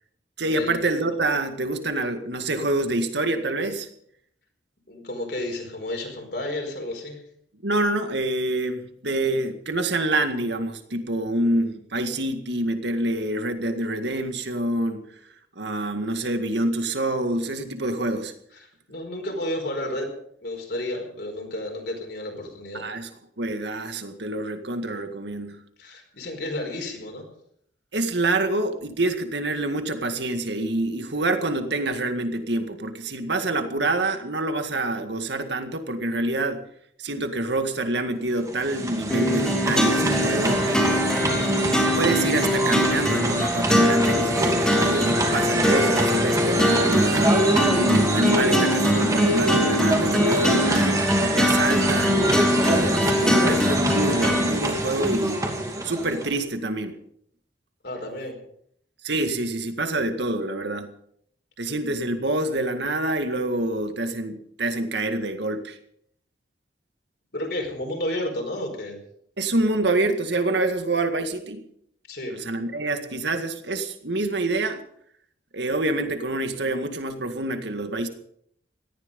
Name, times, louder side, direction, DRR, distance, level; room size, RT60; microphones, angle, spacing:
voice 1, 0.4-3.9 7.6-15.0 15.6-18.3 22.7-23.1 23.4-25.6 27.9-36.6 37.0-41.0 41.9-55.5 55.8-57.0 59.0-60.9 61.6-65.8 69.4-71.6 72.3-74.8 75.5-78.1, right 2 dB, 65° right, 7 dB, 1.9 m, -26 dB
voice 2, 4.9-7.2 18.9-20.1 20.4-22.8 25.8-27.3 57.8-58.4 67.3-69.0 72.1-72.3, left 1 dB, 60° left, 2 dB, 4.8 m, -31 dB
sound 1, 38.3-56.4, right 1 dB, 15° right, 2.6 m, -25 dB
sound 2, 39.1-54.5, left 1 dB, 5° left, 3.6 m, -23 dB
18.0 x 14.0 x 5.4 m, 0.69 s
head